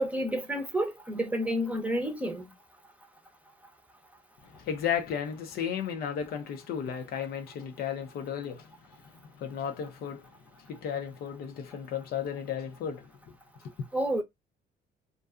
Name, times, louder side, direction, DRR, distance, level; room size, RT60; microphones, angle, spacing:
voice 1, 0.0-2.5 13.9-14.2, right 1 dB, 10° right, 0.7 m, -30 dB
voice 2, 4.4-8.7 9.1-10.3 10.6-13.3 13.8-13.9, left 8 dB, 65° left, 0.6 m, -34 dB
2.5 x 2.3 x 2.3 m
cardioid pair, 110°, 17 cm